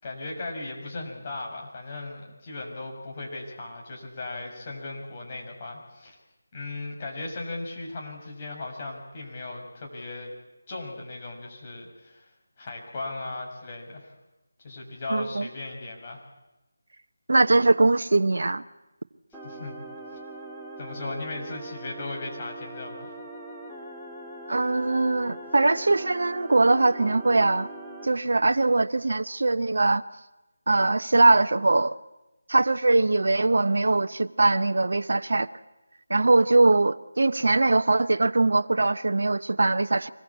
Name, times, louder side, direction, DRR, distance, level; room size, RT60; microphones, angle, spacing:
voice 1, 0.0-6.2 6.5-10.3 10.7-12.3 12.6-14.1 14.6-16.2 19.4-19.8 20.8-23.1, left 2 dB, 30° left, 0 dB, 6.6 m, -37 dB
voice 2, 15.1-15.5 17.3-18.6 24.5-27.7 28.0-30.0 30.7-31.9 32.5-35.5 36.1-40.1, right 2 dB, 70° right, 9 dB, 1.0 m, -21 dB
sound 1, 19.3-28.1, right 1 dB, ahead, 2.3 m, -41 dB
25.0 x 21.0 x 8.6 m, 0.99 s
figure-of-eight pair, 165°, 0 cm